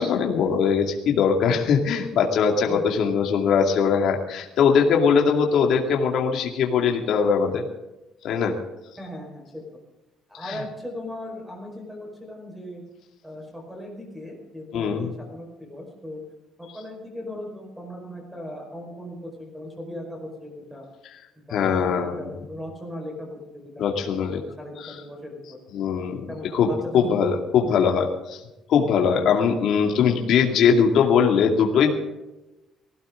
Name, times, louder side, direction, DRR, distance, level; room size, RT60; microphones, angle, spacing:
voice 1, 0.0-7.6 8.2-8.5 10.5-10.6 14.7-15.1 21.5-22.2 23.8-24.4 24.8-24.9 25.7-26.2 26.5-28.4 28.7-31.9, left 6 dB, 55° left, 2 dB, 2.4 m, -21 dB
voice 2, 9.0-9.6 10.3-12.8 13.2-16.2 16.6-20.8 21.4-25.6 26.3-27.3, left 1 dB, 5° right, 1 dB, 5.1 m, -38 dB
20.0 x 16.5 x 3.9 m, 1.0 s
cardioid pair, 170°, 0 cm